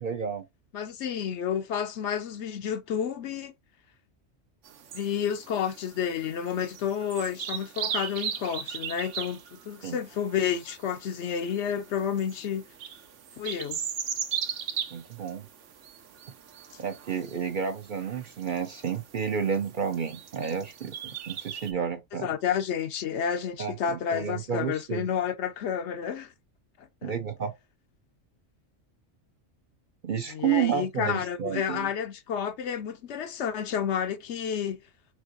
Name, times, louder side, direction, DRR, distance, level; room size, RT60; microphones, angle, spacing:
voice 1, 0.0-0.4 9.8-10.0 14.9-15.5 16.8-22.3 23.6-25.1 27.0-27.5 30.0-31.9, right 7 dB, 50° right, 0.6 m, -31 dB
voice 2, 0.7-3.5 4.9-12.6 13.4-13.8 22.2-26.3 27.0-27.1 30.3-34.8, left 8 dB, 70° left, 0.9 m, -30 dB
sound 1, 4.6-21.7, right 8 dB, 75° right, 1.0 m, -39 dB
4.4 x 3.7 x 2.5 m
omnidirectional pair, 1.3 m